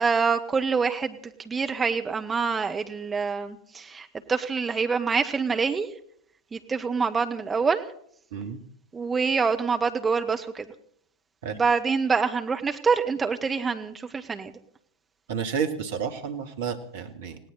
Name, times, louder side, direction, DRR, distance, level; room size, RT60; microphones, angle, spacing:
voice 1, 0.0-5.9 6.5-7.8 8.9-10.7 11.5-14.5, right 5 dB, 15° right, 6 dB, 1.6 m, -26 dB
voice 2, 15.3-17.4, right 7 dB, 55° right, 6 dB, 2.2 m, -31 dB
19.5 x 17.5 x 4.2 m, 0.63 s
figure-of-eight pair, 90°, 0 cm